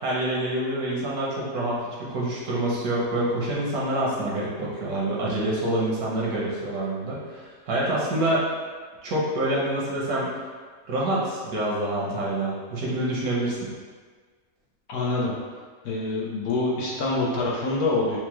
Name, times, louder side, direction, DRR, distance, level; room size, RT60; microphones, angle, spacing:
voice 1, 0.0-8.5 9.0-10.3 10.9-13.7, right 1 dB, 75° right, -5 dB, 1.4 m, -26 dB
voice 2, 14.9-15.3 15.8-18.2, left 2 dB, 85° left, -4 dB, 1.3 m, -25 dB
4.6 x 2.1 x 2.9 m, 1.5 s
omnidirectional pair, 1.6 m